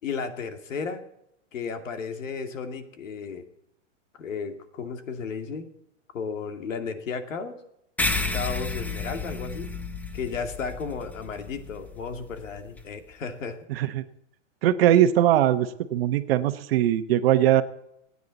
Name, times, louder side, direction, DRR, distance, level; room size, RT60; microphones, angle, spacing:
voice 1, 0.0-1.0 1.5-3.4 4.2-5.7 6.1-7.6 8.3-9.7 10.1-13.9, left 5 dB, 85° left, 6 dB, 2.5 m, -34 dB
sound 1, 8.0-12.8, left 3 dB, 5° left, 0.6 m, -32 dB
voice 2, 13.7-14.0 14.6-17.6, right 12 dB, 50° right, 10 dB, 1.1 m, -21 dB
27.5 x 9.7 x 4.1 m, 0.79 s
hypercardioid pair, 150°, 38 cm